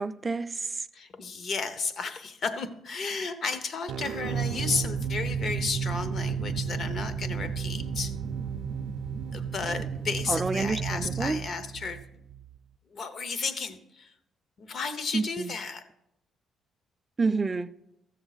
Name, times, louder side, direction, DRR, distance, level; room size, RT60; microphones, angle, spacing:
voice 1, 0.0-0.9 10.3-11.4 15.1-15.5 17.2-17.7, right 4 dB, 25° right, 0.4 m, -29 dB
voice 2, 0.9-8.1 9.3-12.0 12.9-14.1 14.6-15.8, left 4 dB, 50° left, 0.8 m, -33 dB
sound 1, 3.9-12.6, right 6 dB, 80° right, 0.5 m, -32 dB
14.5 x 7.0 x 4.0 m
cardioid pair, 115°, 0 cm